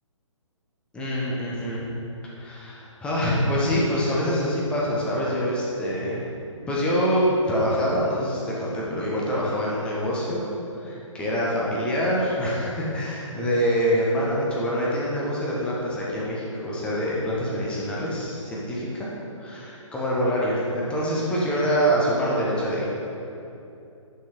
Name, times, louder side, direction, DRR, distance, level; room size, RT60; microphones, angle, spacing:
voice 1, 0.9-1.9 2.3-6.2 6.7-10.4 10.8-18.8 19.4-22.9, equal, 5° left, -6 dB, 0.9 m, -25 dB
8.9 x 5.6 x 3.0 m, 2.8 s
figure-of-eight pair, 135°, 17 cm